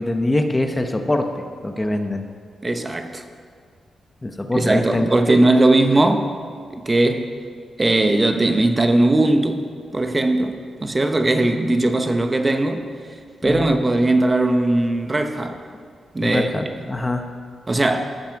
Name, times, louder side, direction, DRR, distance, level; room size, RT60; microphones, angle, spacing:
voice 1, 0.0-2.2 4.2-5.1 13.4-13.8 16.2-17.2, left 1 dB, 15° left, 0.9 m, -23 dB
voice 2, 2.6-3.2 4.5-6.3 6.7-7.3 7.8-9.7 9.9-12.9 13.4-15.6 16.1-16.5 17.7-18.1, right 2 dB, 20° right, 0.9 m, -19 dB
15.0 x 9.8 x 4.7 m
wide cardioid pair, 135°, 0 cm